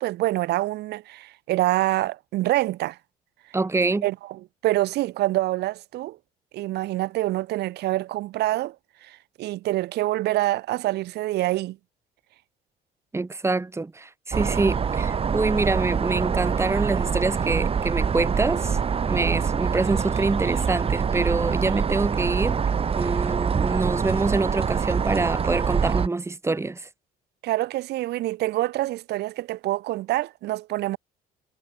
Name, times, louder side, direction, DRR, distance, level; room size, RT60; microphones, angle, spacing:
voice 1, 0.0-3.0 4.0-6.2 6.5-8.7 9.0-11.8 27.4-31.0, right 16 dB, 80° right, 4.3 m, -26 dB
voice 2, 3.5-4.1 13.1-18.8 19.1-22.6 23.0-26.9, right 3 dB, 15° right, 2.6 m, -26 dB
sound 1, 14.3-26.1, right 6 dB, 35° right, 2.1 m, -25 dB
cardioid pair, 110°, 17 cm